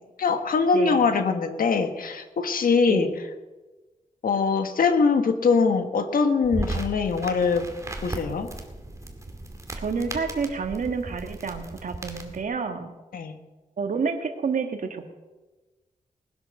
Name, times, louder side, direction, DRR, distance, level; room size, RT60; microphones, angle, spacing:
voice 1, 0.2-3.1 4.2-7.6 8.0-8.5 13.1-13.3, left 5 dB, 80° left, 7 dB, 1.6 m, -22 dB
sound 1, 6.4-12.4, right 2 dB, 20° right, 2.2 m, -36 dB
voice 2, 9.8-12.9 13.8-15.1, right 5 dB, 65° right, 6 dB, 1.7 m, -29 dB
20.0 x 10.0 x 6.5 m, 1.2 s
wide cardioid pair, 125°, 14 cm